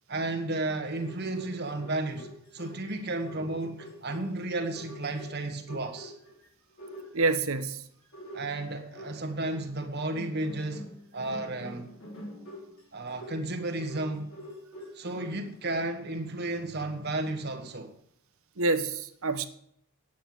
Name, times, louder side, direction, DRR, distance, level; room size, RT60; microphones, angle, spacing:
voice 1, 0.1-6.1 8.3-10.9 11.1-11.9 12.9-14.3 14.9-17.9, right 2 dB, 45° right, 1.5 m, -33 dB
sound 1, 0.7-6.5 6.8-7.6 8.0-9.6 10.1-15.5, equal, 75° left, 4.4 m, -46 dB
voice 2, 7.1-7.8 18.6-19.5, right 3 dB, 70° right, 1.0 m, -27 dB
9.3 x 8.8 x 7.7 m
head